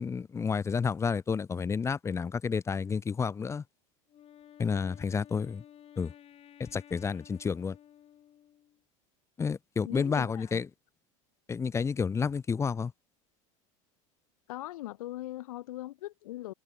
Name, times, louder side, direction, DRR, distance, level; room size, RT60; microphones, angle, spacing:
voice 1, 0.0-3.6 4.6-5.6 6.0-6.1 6.6-7.8 9.4-10.7 11.5-12.9, left 5 dB, 15° left, 0.6 m, -30 dB
Wind instrument woodwind instrument, 4.1-8.8, left 10 dB, 35° left, 4.0 m, -54 dB
voice 2, 9.9-10.6 14.5-16.5, left 16 dB, 85° left, 1.6 m, -40 dB
supercardioid pair, 120°, 18 cm